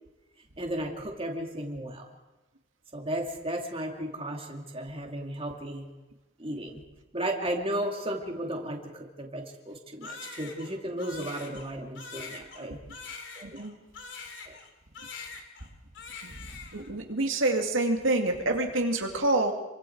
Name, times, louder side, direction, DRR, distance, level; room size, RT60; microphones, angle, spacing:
voice 1, 0.6-2.0 2.9-5.9 6.4-6.8 7.1-12.8 13.1-13.6 14.5-14.6, right 1 dB, 30° right, 1 dB, 2.7 m, -34 dB
Crying sobbing, 10.0-14.7 14.9-15.7 15.9-16.9, left 4 dB, 70° left, 3.0 m, -43 dB
voice 2, 13.4-13.7 16.2-16.3 16.7-19.5, right 2 dB, 85° right, 3 dB, 2.3 m, -27 dB
28.0 x 24.0 x 4.7 m, 1.1 s
head